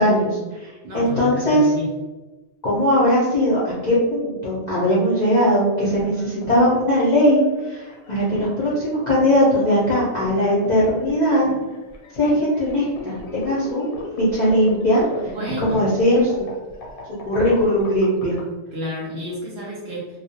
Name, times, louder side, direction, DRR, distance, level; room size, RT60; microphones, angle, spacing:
voice 1, 0.0-1.7 2.6-11.5 12.1-13.9 14.1-15.1 15.6-16.5 17.2-18.4, equal, 50° left, -8 dB, 0.5 m, -19 dB
voice 2, 0.8-1.9 15.2-15.8 18.7-20.2, left 1 dB, 60° right, -4 dB, 0.7 m, -31 dB
sound 1, 6.0-18.4, left 3 dB, 90° left, 1.0 m, -37 dB
2.3 x 2.0 x 2.7 m, 1.2 s
omnidirectional pair, 1.4 m